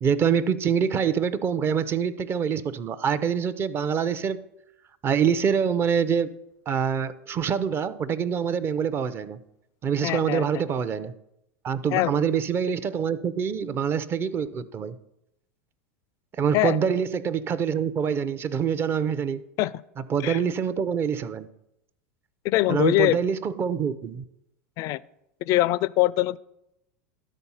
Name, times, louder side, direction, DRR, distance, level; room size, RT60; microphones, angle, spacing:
voice 1, 0.0-4.4 5.0-6.4 6.7-9.4 9.8-11.1 11.6-15.0 16.3-19.4 20.1-21.5 22.7-24.2, right 7 dB, 30° right, 0.6 m, -25 dB
voice 2, 10.0-10.5 11.9-12.2 16.5-16.8 19.6-19.8 20.2-20.4 22.4-23.2 24.8-25.0 25.4-26.4, left 17 dB, 45° left, 0.3 m, -23 dB
12.0 x 4.1 x 5.5 m
hypercardioid pair, 95°, 8 cm